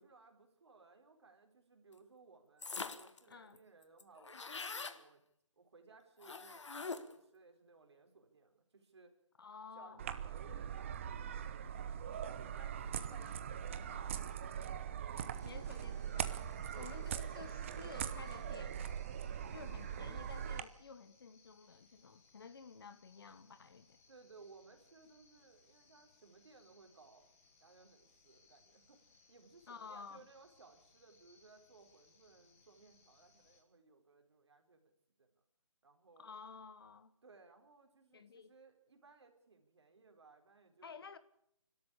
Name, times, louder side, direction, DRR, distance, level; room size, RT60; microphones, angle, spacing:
voice 1, 0.0-4.4 4.7-5.2 5.6-9.1 9.7-11.5 12.2-15.1 16.7-17.1 19.7-19.9 24.1-27.3 27.6-29.0 29.3-34.9 35.2-35.3 35.8-36.3 37.2-41.0, right 4 dB, 55° right, 4.3 m, -62 dB
sound 1, 2.6-3.2 3.6-3.7 3.8-5.0 6.2-7.2, left 4 dB, 60° left, 1.8 m, -43 dB
voice 2, 9.4-10.0 15.4-16.3 16.7-18.8 19.5-24.0 29.7-30.2 36.2-37.1 38.1-38.5 40.8-41.2, left 5 dB, 45° left, 1.3 m, -53 dB
sound 2, 10.0-20.6, right 8 dB, 25° right, 0.9 m, -41 dB
sound 3, 15.4-33.6, left 4 dB, 30° left, 3.5 m, -69 dB
27.0 x 12.5 x 8.5 m
figure-of-eight pair, 160°, 17 cm